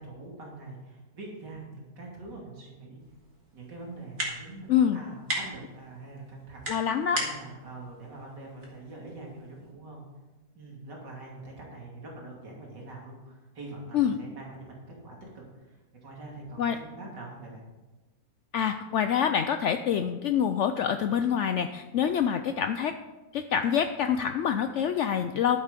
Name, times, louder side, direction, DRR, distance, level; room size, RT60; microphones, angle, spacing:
voice 1, 0.0-3.0 3.5-6.7 7.1-10.0 10.5-17.6, right 2 dB, 90° right, -2 dB, 3.2 m, -44 dB
sound 1, 3.0-9.7, right 1 dB, 50° right, 3.0 m, -39 dB
voice 2, 6.7-7.2 13.9-14.1 16.6-16.8 18.5-22.9 23.3-25.6, left 8 dB, 80° left, 8 dB, 0.6 m, -26 dB
12.0 x 8.2 x 5.2 m, 1.2 s
omnidirectional pair, 1.8 m